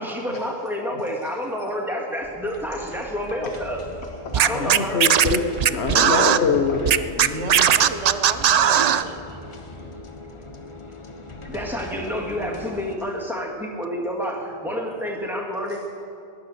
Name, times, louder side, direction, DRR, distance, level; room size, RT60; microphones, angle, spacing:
voice 1, 0.0-3.8 4.3-5.0 11.4-15.8, equal, ahead, -1 dB, 2.3 m, -29 dB
sound 1, 2.2-13.0, left 2 dB, 30° left, 1.0 m, -40 dB
voice 2, 4.2-7.7 9.8-9.9 11.3-11.4, left 4 dB, 70° left, 3 dB, 1.3 m, -25 dB
Scratching (performance technique), 4.3-6.4 6.9-9.0, right 9 dB, 60° right, 0.4 m, -17 dB
voice 3, 7.3-9.4, right 6 dB, 85° right, 8 dB, 1.2 m, -34 dB
18.5 x 11.0 x 6.6 m, 2.5 s
omnidirectional pair, 1.1 m